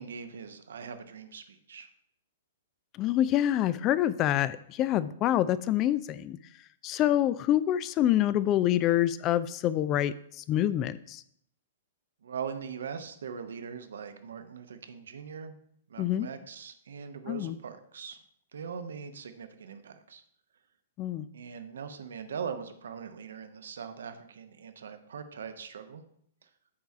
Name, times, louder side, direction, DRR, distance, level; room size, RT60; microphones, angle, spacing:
voice 1, 0.0-1.9 12.2-15.5 15.9-18.2 18.5-20.2 21.3-26.0 26.4-26.5, right 6 dB, 65° right, 9 dB, 0.9 m, -41 dB
voice 2, 3.0-6.4 6.8-11.2 16.0-16.3 17.3-17.6 21.0-21.3, left 12 dB, 30° left, 16 dB, 0.4 m, -26 dB
8.6 x 4.6 x 5.5 m, 0.67 s
figure-of-eight pair, 110°, 0 cm